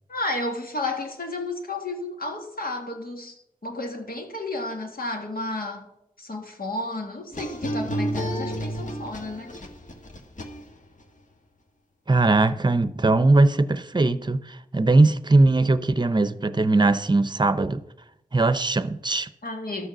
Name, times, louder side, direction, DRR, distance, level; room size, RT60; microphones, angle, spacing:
voice 1, 0.1-5.9 6.2-9.6 19.4-19.9, left 2 dB, 70° left, 2.0 m, -32 dB
sound 1, 7.3-11.0, equal, 55° left, 1.5 m, -31 dB
voice 2, 12.1-17.8 18.3-19.3, right 2 dB, 30° right, 0.7 m, -20 dB
12.5 x 6.5 x 6.1 m
wide cardioid pair, 55°, 16 cm